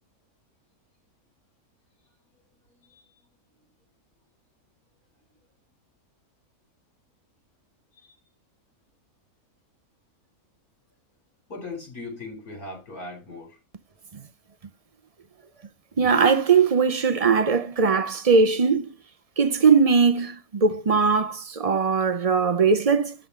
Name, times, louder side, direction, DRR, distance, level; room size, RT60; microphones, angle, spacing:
voice 1, 2.7-3.0 7.9-8.2 11.5-13.6, left 2 dB, 70° left, 4.7 m, -39 dB
voice 2, 16.0-18.9 19.4-23.1, right 5 dB, 40° right, 0.5 m, -20 dB
11.5 x 3.9 x 5.6 m
omnidirectional pair, 1.6 m